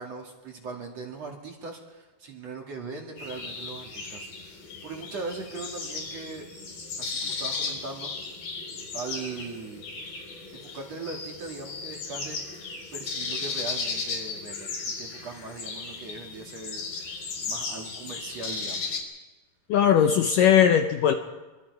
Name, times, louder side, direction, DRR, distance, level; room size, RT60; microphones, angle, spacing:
voice 1, 0.0-6.5 7.0-8.1 8.9-9.8 10.5-12.4 12.9-19.0, right 3 dB, 45° right, 1 dB, 3.0 m, -39 dB
sound 1, 3.2-19.0, left 4 dB, 60° left, 5.6 m, -35 dB
voice 2, 19.7-21.2, left 9 dB, 75° left, 6 dB, 2.1 m, -19 dB
25.0 x 24.5 x 4.8 m, 1.2 s
omnidirectional pair, 4.7 m